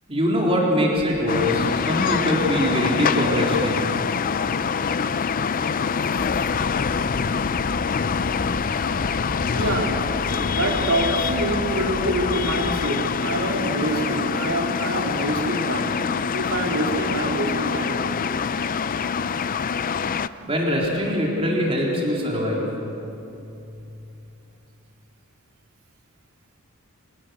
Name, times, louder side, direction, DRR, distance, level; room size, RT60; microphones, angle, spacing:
voice 1, 0.1-3.9 20.4-22.7, equal, 25° right, -3 dB, 3.8 m, -23 dB
sound 1, 1.3-20.3, left 6 dB, 40° left, 0.4 m, -25 dB
sound 2, 6.2-12.8, equal, ahead, 2.6 m, -35 dB
voice 2, 9.5-10.0 10.5-15.9 16.3-18.0, right 1 dB, 70° right, -1 dB, 4.0 m, -26 dB
27.0 x 20.0 x 6.4 m, 2.8 s
head